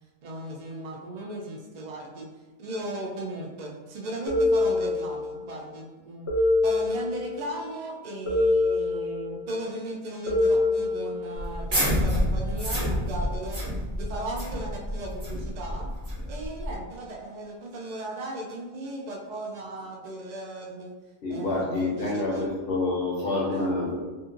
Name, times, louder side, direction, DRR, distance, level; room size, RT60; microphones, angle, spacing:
voice 1, 0.2-2.3 2.6-6.3 6.6-13.6 14.0-15.9 16.3-20.9 21.3-22.5 23.5-23.7, right 1 dB, 80° right, -1 dB, 0.3 m, -36 dB
sound 1, 4.3-5.4 6.3-7.4 8.3-9.4 10.3-11.4, left 2 dB, 15° left, 0.6 m, -25 dB
sound 2, 11.4-16.7, equal, 35° right, 0.8 m, -28 dB
voice 2, 21.2-24.1, left 2 dB, 60° left, -5 dB, 0.7 m, -27 dB
2.7 x 2.5 x 2.5 m, 1.2 s
omnidirectional pair, 1.3 m